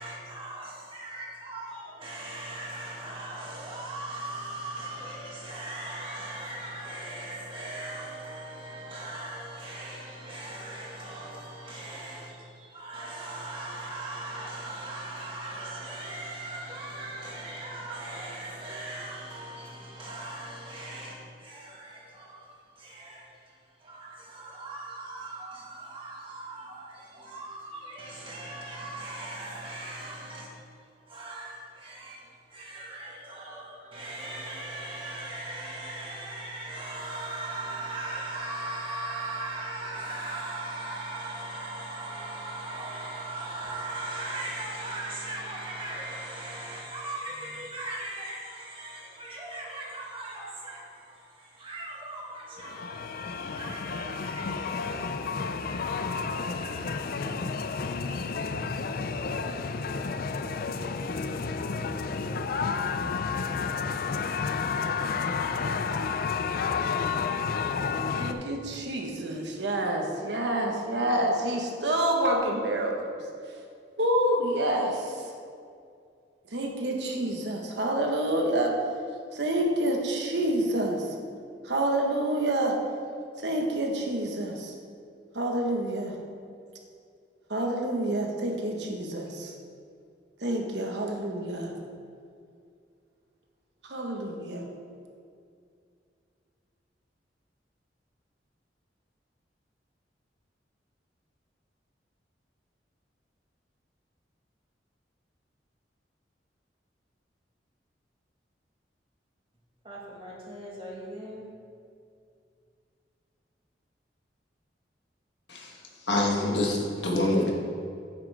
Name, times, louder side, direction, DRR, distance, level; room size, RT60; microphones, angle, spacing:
voice 1, 0.0-30.7 31.0-58.1 109.8-111.5, right 2 dB, 30° right, 1.9 m, -39 dB
sound 1, 52.6-68.3, left 5 dB, 55° left, 0.4 m, -31 dB
voice 2, 68.1-73.1 74.0-75.2 76.5-78.7 79.3-81.1 81.6-82.8 83.4-84.7 85.3-86.1 87.5-89.5 90.4-91.7 93.8-94.6, right 1 dB, 75° right, 1.3 m, -28 dB
voice 3, 116.1-117.5, left 1 dB, 80° left, 1.5 m, -26 dB
9.7 x 7.5 x 3.5 m
head